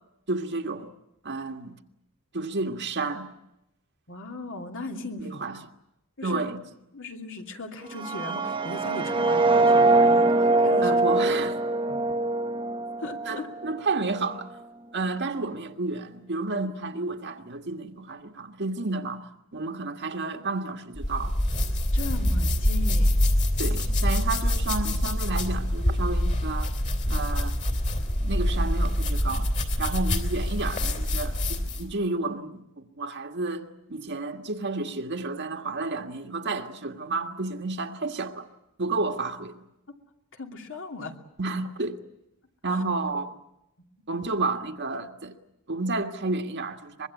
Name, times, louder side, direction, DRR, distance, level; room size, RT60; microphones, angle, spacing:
voice 1, 0.3-0.9 1.2-1.8 2.3-3.3 5.2-5.6 6.2-6.6 10.8-11.6 13.3-14.5 14.9-19.3 19.5-21.3 23.6-26.7 27.1-27.6 28.2-29.5 29.8-38.5 38.8-39.6 41.4-42.0 42.6-43.4 44.1-45.3 45.7-47.1, right 3 dB, 55° right, 1.8 m, -31 dB
voice 2, 4.1-5.5 6.2-6.5 6.9-11.0 11.9-12.0 13.0-13.5 21.9-23.2 40.3-41.2 42.7-42.8 43.8-43.9, left 2 dB, 60° left, 2.8 m, -37 dB
sound 1, 7.9-13.8, right 2 dB, 25° right, 1.3 m, -23 dB
sound 2, 21.0-31.9, left 1 dB, 35° left, 3.3 m, -25 dB
24.5 x 22.5 x 8.5 m
head